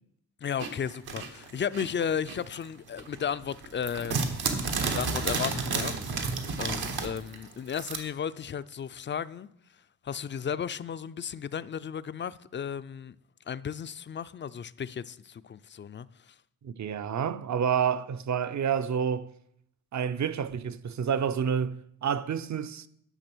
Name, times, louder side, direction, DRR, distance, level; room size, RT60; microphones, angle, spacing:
voice 1, 0.4-9.5 10.0-13.2 13.5-16.3, left 7 dB, 30° left, 0.4 m, -34 dB
sound 1, 0.6-2.7 3.0-8.0, right 4 dB, 80° right, 1.5 m, -31 dB
voice 2, 16.6-19.3 19.9-22.9, right 7 dB, 50° right, 0.6 m, -29 dB
10.5 x 6.1 x 6.1 m
cardioid pair, 100°, 37 cm